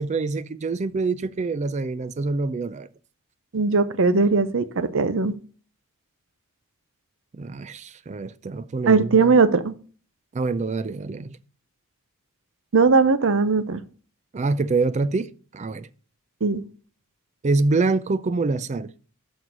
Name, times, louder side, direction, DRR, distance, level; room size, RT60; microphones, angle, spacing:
voice 1, 0.0-2.9 7.3-9.3 10.3-11.4 14.3-15.9 17.4-18.9, right 3 dB, 30° right, 0.4 m, -25 dB
voice 2, 3.5-5.4 8.9-9.7 12.7-13.8 16.4-16.6, right 4 dB, 60° right, 0.7 m, -19 dB
6.3 x 6.1 x 5.2 m
head